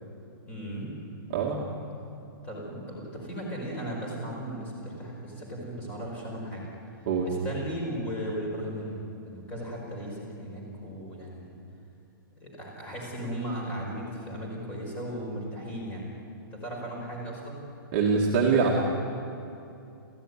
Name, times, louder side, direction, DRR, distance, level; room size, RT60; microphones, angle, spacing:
voice 1, 0.4-0.9 2.4-6.9 7.2-9.0 9.3-11.6 12.4-16.1 16.5-17.6, equal, 10° left, -2 dB, 5.3 m, -36 dB
voice 2, 1.3-1.7 7.1-7.3 17.9-18.8, right 5 dB, 25° right, -3 dB, 2.1 m, -24 dB
28.5 x 15.5 x 10.0 m, 2.6 s
hypercardioid pair, 180°, 12 cm